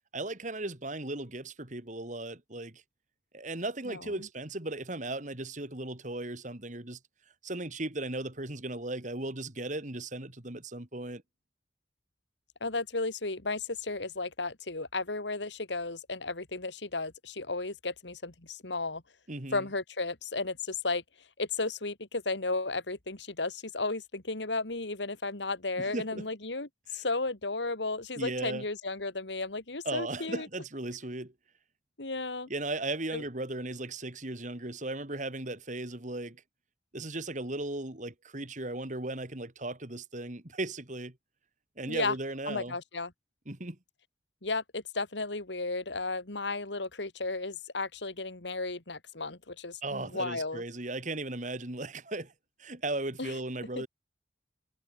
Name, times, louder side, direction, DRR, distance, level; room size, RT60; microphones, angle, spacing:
voice 1, 0.1-2.8 3.3-7.0 7.4-11.2 19.3-19.7 25.8-26.3 26.9-27.0 28.2-28.6 29.8-31.3 32.5-36.4 36.9-41.2 41.8-42.8 43.5-43.8 49.8-52.3 52.6-53.9, right 2 dB, 45° right, 2.6 m, -36 dB
voice 2, 3.8-4.3 12.6-19.0 19.5-21.0 21.4-30.5 32.0-32.5 33.1-33.2 41.9-42.1 42.5-43.1 44.4-50.6 53.2-53.4 53.8-53.9, left 3 dB, 75° left, 2.7 m, -34 dB
head